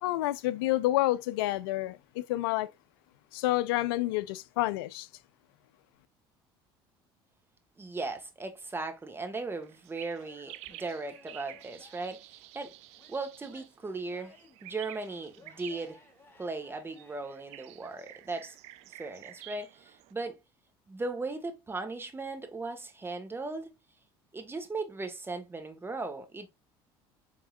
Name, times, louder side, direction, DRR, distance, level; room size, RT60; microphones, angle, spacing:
voice 1, 0.0-2.7 3.3-5.1, left 16 dB, 85° left, 0.4 m, -29 dB
voice 2, 7.8-12.7 13.1-16.0 16.4-18.6 19.0-20.4 20.9-23.7 24.3-26.5, right 3 dB, 20° right, 1.3 m, -37 dB
sound 1, 9.6-20.1, right 15 dB, 65° right, 0.4 m, -51 dB
Male speech man speaking / Yell / Laughter, 10.1-12.3 13.0-14.7 15.3-17.2, left 4 dB, 20° left, 1.4 m, -59 dB
4.6 x 3.6 x 2.3 m
supercardioid pair, 80°, 12 cm